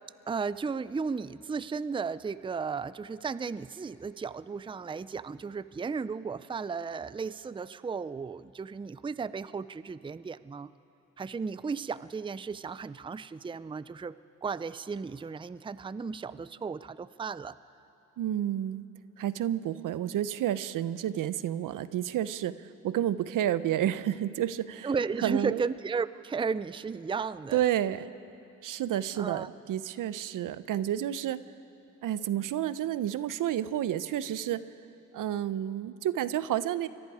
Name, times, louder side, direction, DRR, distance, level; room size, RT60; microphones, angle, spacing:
voice 1, 0.3-10.7 11.2-17.6 24.8-27.6 29.2-29.5, right 5 dB, 15° right, 16 dB, 0.5 m, -34 dB
voice 2, 18.2-18.8 19.2-24.9 25.2-25.6 27.5-28.1 28.6-31.4 32.0-34.6 35.1-36.9, right 11 dB, 75° right, 15 dB, 0.7 m, -30 dB
28.5 x 23.0 x 4.9 m, 2.9 s
cardioid pair, 70°, 32 cm